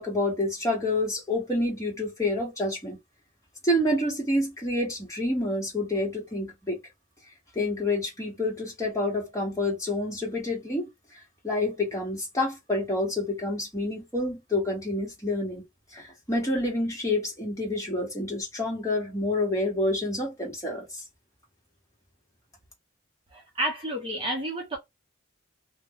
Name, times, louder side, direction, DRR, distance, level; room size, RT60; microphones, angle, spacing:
voice 1, 0.0-3.0 3.6-6.8 7.5-10.9 11.4-15.6 15.9-21.0, left 1 dB, 15° left, 1.3 m, -28 dB
voice 2, 23.3-24.8, right 1 dB, 25° right, 0.8 m, -30 dB
2.5 x 2.2 x 3.5 m
head